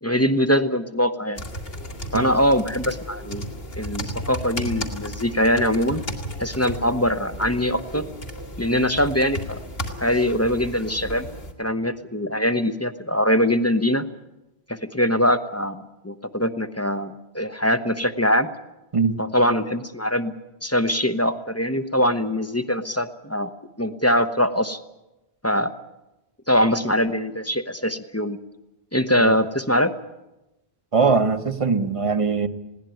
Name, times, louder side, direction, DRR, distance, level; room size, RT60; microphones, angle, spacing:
voice 1, 0.0-1.4 2.1-3.4 3.8-6.0 6.4-8.0 8.6-9.6 10.0-11.3 11.6-14.1 14.7-18.5 19.2-20.3 20.6-23.5 23.8-24.8 25.4-25.7 26.5-28.4 28.9-29.9, equal, 15° left, 10 dB, 0.8 m, -22 dB
sound 1, 1.3-11.5, equal, 70° left, 2.5 m, -34 dB
voice 2, 30.9-32.5, right 5 dB, 35° right, 10 dB, 1.0 m, -21 dB
20.5 x 17.0 x 9.2 m, 0.97 s
omnidirectional pair, 1.1 m